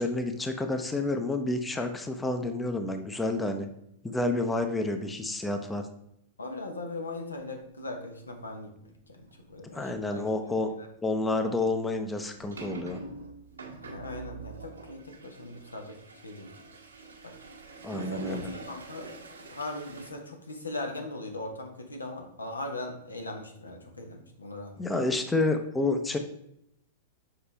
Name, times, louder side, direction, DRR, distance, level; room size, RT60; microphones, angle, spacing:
voice 1, 0.0-3.7 4.0-5.9 9.7-10.7 11.0-13.0 17.8-18.5 24.8-26.2, left 2 dB, 10° left, 6 dB, 0.6 m, -29 dB
voice 2, 6.4-10.2 10.7-10.9 13.8-16.0 16.2-16.5 17.2-17.3 17.9-19.1 19.4-24.8, left 2 dB, 85° left, 3 dB, 1.0 m, -39 dB
sound 1, 9.3-9.4 9.9-10.1 11.2-20.1, right 4 dB, 80° right, 1.2 m, -45 dB
6.7 x 4.3 x 3.3 m, 0.77 s
figure-of-eight pair, 100°, 0 cm